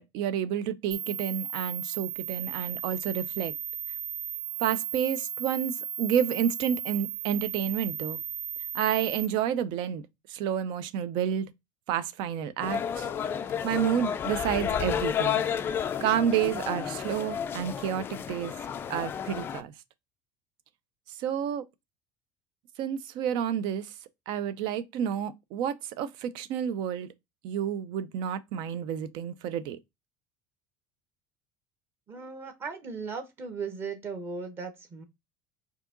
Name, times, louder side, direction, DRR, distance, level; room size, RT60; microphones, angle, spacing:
voice 1, 0.0-3.5 4.6-8.2 8.7-10.0 10.3-11.5 11.9-13.1 13.6-15.4 16.0-18.5 18.9-19.7 21.1-21.6 22.8-23.9 24.3-27.1 27.4-29.8, right 9 dB, 60° right, 0.6 m, -30 dB
sound 1, 0.9-9.3, right 8 dB, 80° right, 1.0 m, -35 dB
sound 2, 12.6-19.6, left 8 dB, 25° left, 0.3 m, -31 dB
voice 2, 32.1-35.0, right 5 dB, 25° right, 1.0 m, -37 dB
4.7 x 2.8 x 3.8 m
cardioid pair, 160°, 9 cm